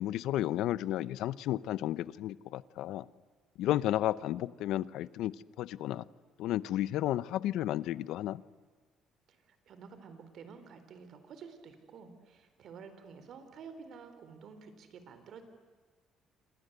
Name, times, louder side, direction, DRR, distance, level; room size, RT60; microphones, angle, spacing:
voice 1, 0.0-3.1 3.6-6.1 6.4-8.4, left 13 dB, 80° left, 18 dB, 0.8 m, -32 dB
voice 2, 9.3-15.4, right 5 dB, 55° right, 9 dB, 4.1 m, -51 dB
27.5 x 26.5 x 8.2 m, 1.4 s
cardioid pair, 130°, 0 cm